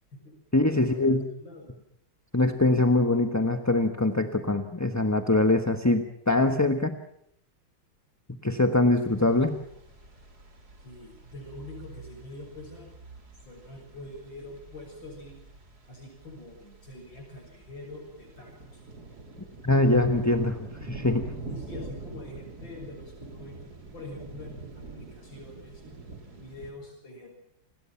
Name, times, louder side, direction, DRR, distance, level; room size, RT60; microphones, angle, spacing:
voice 1, 0.5-1.3 2.3-7.0 8.4-9.6 19.6-21.3, left 2 dB, 10° left, 6 dB, 0.9 m, -23 dB
voice 2, 1.4-1.8 10.8-12.9 13.4-15.4 15.9-18.8 21.5-23.6 23.9-25.8 26.4-27.4, left 2 dB, 60° left, 1 dB, 7.3 m, -44 dB
sound 1, 9.0-26.7, right 2 dB, 50° right, 4.2 m, -44 dB
29.5 x 20.5 x 5.8 m, 0.74 s
omnidirectional pair, 2.3 m